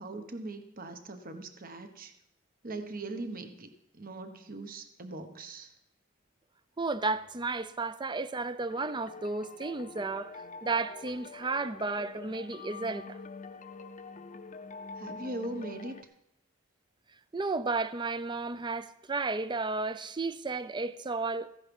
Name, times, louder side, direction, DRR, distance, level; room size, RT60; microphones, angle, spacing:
voice 1, 0.0-2.1 2.6-5.7 14.9-16.1, right 2 dB, 45° right, 1.2 m, -40 dB
voice 2, 6.8-13.2 17.3-21.5, right 3 dB, 20° right, 0.5 m, -33 dB
sound 1, 8.7-16.0, left 4 dB, 40° left, 0.6 m, -45 dB
15.0 x 10.5 x 5.4 m
head